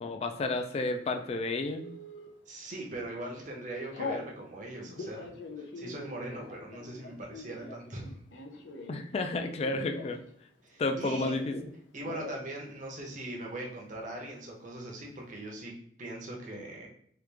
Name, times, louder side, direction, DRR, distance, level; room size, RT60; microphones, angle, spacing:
voice 1, 0.0-1.9 8.9-10.2 10.8-11.5, left 2 dB, 35° left, 6 dB, 0.3 m, -31 dB
Telephone, 1.8-2.3 2.9-3.1 3.4-4.3 4.8-10.3 10.6-11.7 12.0-12.4 12.7-12.8 13.1-13.7, left 3 dB, 90° left, 0.6 m, -42 dB
voice 2, 2.5-5.3 5.6-8.2 10.6-11.4 11.9-15.7 16.0-16.9, right 1 dB, 45° right, 0 dB, 0.7 m, -40 dB
3.0 x 2.4 x 3.3 m, 0.64 s
head